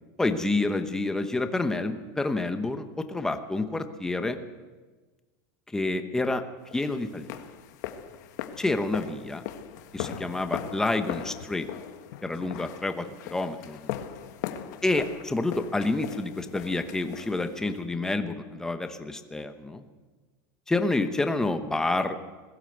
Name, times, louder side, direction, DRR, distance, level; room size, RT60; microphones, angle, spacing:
voice 1, 0.2-4.4 5.7-6.4 6.7-7.4 8.6-9.4 9.9-11.7 12.2-13.9 14.8-19.8 20.7-22.2, left 2 dB, 5° left, 8 dB, 1.0 m, -28 dB
sound 1, 6.7-17.8, left 10 dB, 65° left, 1.6 m, -39 dB
21.5 x 16.0 x 7.9 m, 1.3 s
supercardioid pair, 170°, 10 cm